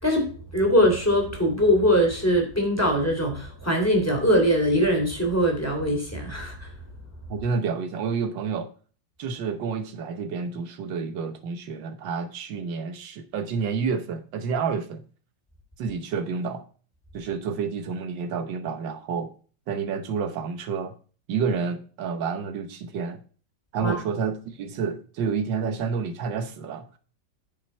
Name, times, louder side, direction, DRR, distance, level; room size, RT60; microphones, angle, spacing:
voice 1, 0.0-6.7 23.8-24.0, equal, 10° left, 2.9 m, -22 dB
voice 2, 7.3-8.7 9.2-15.0 15.8-16.6 17.1-19.3 19.7-20.9 21.3-23.2 23.7-27.0, right 5 dB, 80° right, 1.7 m, -29 dB
9.4 x 6.2 x 4.3 m
omnidirectional pair, 2.0 m